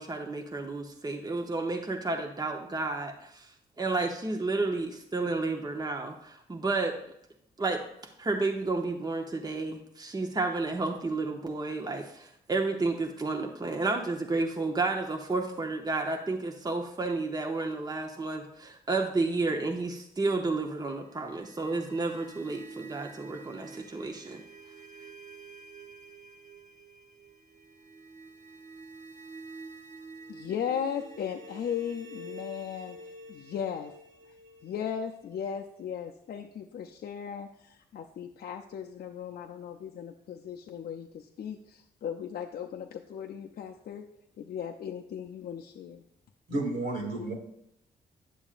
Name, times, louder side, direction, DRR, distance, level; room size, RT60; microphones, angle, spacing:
voice 1, 0.0-3.5 3.8-7.0 7.6-7.8 8.2-24.4, right 3 dB, 20° right, 3 dB, 0.9 m, -31 dB
sound 1, 20.9-35.8, right 2 dB, 45° right, 1.0 m, -48 dB
voice 2, 30.3-33.0 33.3-33.9 34.6-44.1 44.4-46.0, left 8 dB, 60° left, 2 dB, 0.5 m, -37 dB
voice 3, 46.5-47.3, right 2 dB, 75° right, -1 dB, 2.3 m, -31 dB
10.0 x 6.9 x 2.5 m, 0.76 s
supercardioid pair, 60°, 18 cm